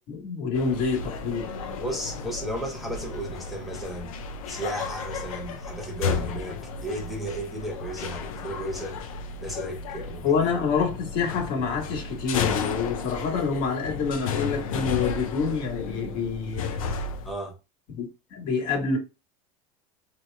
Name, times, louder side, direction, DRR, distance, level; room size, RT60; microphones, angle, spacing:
voice 1, 0.1-1.5 10.2-17.0 17.9-19.0, left 5 dB, 55° left, 1.4 m, -27 dB
sound 1, 0.5-17.3, left 5 dB, 90° left, 0.6 m, -33 dB
voice 2, 1.6-4.1 4.5-9.0 9.4-10.3 17.2-17.6, right 1 dB, ahead, 1.1 m, -34 dB
3.0 x 2.8 x 3.2 m
supercardioid pair, 110°, 17 cm